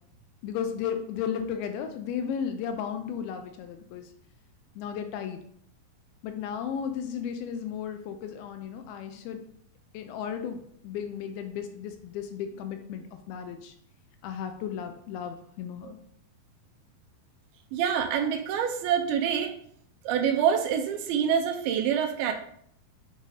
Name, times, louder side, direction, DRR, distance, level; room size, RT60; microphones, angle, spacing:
voice 1, 0.4-4.1 4.8-5.4 6.2-9.4 9.9-13.7 14.2-16.0, left 8 dB, 80° left, 6 dB, 2.3 m, -34 dB
voice 2, 17.7-19.5 20.1-22.3, right 8 dB, 80° right, 5 dB, 2.4 m, -26 dB
7.4 x 2.7 x 4.8 m, 0.65 s
omnidirectional pair, 4.6 m